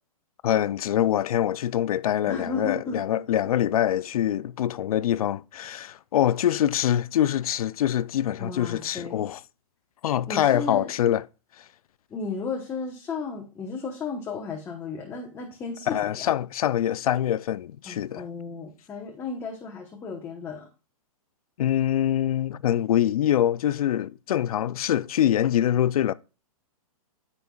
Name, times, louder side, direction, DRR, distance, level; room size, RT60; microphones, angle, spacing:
voice 1, 0.4-9.4 10.0-11.2 11.6-11.7 15.9-18.2 21.6-26.1, left 11 dB, 75° left, 0.5 m, -24 dB
voice 2, 2.3-3.0 8.4-9.3 10.3-10.9 12.1-16.3 17.8-20.7, left 4 dB, 15° left, 1.0 m, -34 dB
14.0 x 5.4 x 2.4 m
hypercardioid pair, 150°, 19 cm